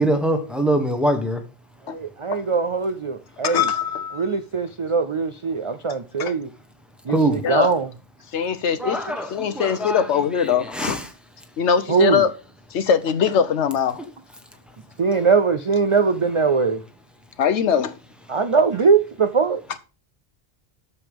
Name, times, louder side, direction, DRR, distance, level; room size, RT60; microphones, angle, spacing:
voice 1, 0.0-1.4 7.1-7.4 8.8-10.0 10.7-11.0, right 1 dB, ahead, 1.1 m, -22 dB
voice 2, 1.9-3.7 4.1-6.5 7.1-7.9 11.9-12.2 15.0-16.8 18.3-19.6, right 5 dB, 55° right, 0.3 m, -21 dB
voice 3, 3.4-4.2 6.2-6.3 7.4-7.7 8.3-9.0 9.3-11.0 11.6-12.3 12.7-14.1 17.4-17.9, left 7 dB, 80° left, 1.1 m, -21 dB
10.5 x 6.9 x 3.6 m
omnidirectional pair, 1.2 m